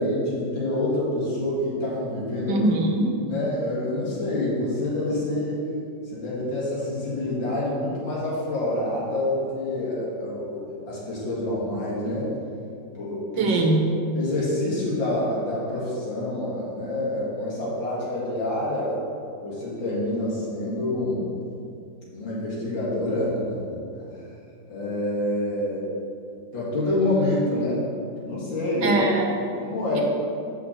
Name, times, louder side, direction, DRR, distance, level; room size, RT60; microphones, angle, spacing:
voice 1, 0.0-2.6 3.3-5.6 6.1-12.3 12.9-13.6 14.1-18.9 19.4-21.2 22.1-24.3 24.7-25.8 26.5-27.8 28.2-29.0 29.4-30.0, left 1 dB, 85° left, -7 dB, 3.0 m, -27 dB
voice 2, 2.5-3.2 13.4-13.9 28.8-29.3 29.9-30.0, right 2 dB, 70° right, 2 dB, 1.7 m, -22 dB
6.0 x 6.0 x 7.3 m, 2.5 s
omnidirectional pair, 2.0 m